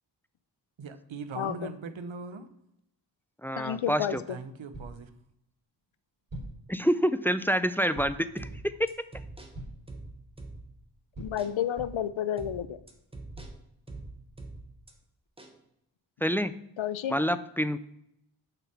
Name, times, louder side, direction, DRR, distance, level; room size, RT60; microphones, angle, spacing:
voice 1, 0.8-2.5 4.3-5.1, right 4 dB, 85° right, 0.9 m, -40 dB
voice 2, 1.3-1.7 3.6-4.4 11.2-12.8 16.8-17.1, left 10 dB, 85° left, 0.6 m, -31 dB
voice 3, 3.4-4.2 6.7-8.9 16.2-16.5 17.1-17.8, equal, 5° left, 0.3 m, -27 dB
sound 1, 4.7-5.1 6.3-6.7 7.9-8.3 9.5-9.9 11.1-12.1 13.3-14.3, right 1 dB, 45° right, 3.5 m, -43 dB
sound 2, 8.4-10.9 11.4-11.6 12.4-14.9 15.4-15.6, right 2 dB, 10° right, 1.1 m, -45 dB
6.7 x 5.9 x 5.9 m
wide cardioid pair, 90°, 45 cm